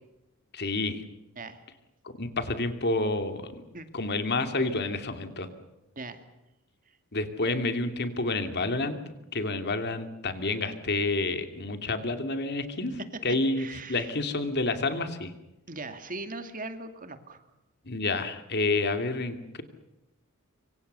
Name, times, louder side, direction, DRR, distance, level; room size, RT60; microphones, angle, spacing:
voice 1, 0.5-1.0 2.2-3.6 3.9-5.5 7.1-9.0 9.3-15.3 17.9-19.6, left 2 dB, 50° left, 8 dB, 2.7 m, -29 dB
voice 2, 13.6-14.1 15.7-17.4, right 2 dB, 40° right, 8 dB, 2.3 m, -39 dB
25.5 x 25.5 x 6.9 m, 0.97 s
head